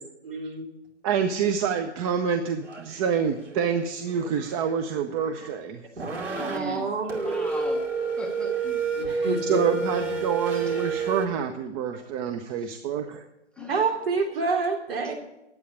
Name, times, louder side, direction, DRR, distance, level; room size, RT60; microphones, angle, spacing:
voice 1, 0.2-0.6 6.3-7.1 9.0-9.6 13.7-15.1, right 4 dB, 55° right, 1 dB, 3.4 m, -27 dB
voice 2, 1.0-5.8 9.4-13.2, right 7 dB, 30° right, 6 dB, 0.8 m, -27 dB
sound 1, 2.6-3.0 3.4-3.7 4.1-5.6 6.0-6.6 7.1-11.3, right 4 dB, 85° right, 2.7 m, -30 dB
voice 3, 6.3-6.9 7.2-7.9 8.2-8.8 10.5-10.7 12.5-12.8 13.6-13.9, equal, 5° left, 0 dB, 1.0 m, -38 dB
11.0 x 8.5 x 8.1 m, 0.89 s
figure-of-eight pair, 120°, 35 cm